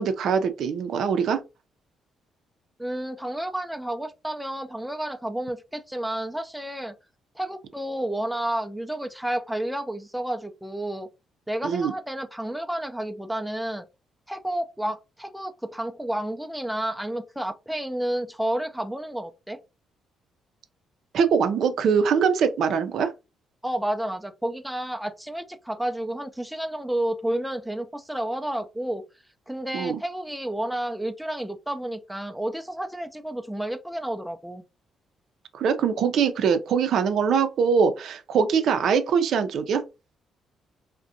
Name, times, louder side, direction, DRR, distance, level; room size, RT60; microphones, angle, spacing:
voice 1, 0.0-1.4 11.6-11.9 21.1-23.1 29.7-30.0 35.5-39.8, right 6 dB, 70° right, 0.4 m, -22 dB
voice 2, 2.8-6.9 7.4-11.1 11.5-13.9 14.3-19.6 23.6-29.0 29.5-34.6, right 1 dB, 5° right, 0.3 m, -30 dB
2.5 x 2.1 x 2.5 m
cardioid pair, 90°, 0 cm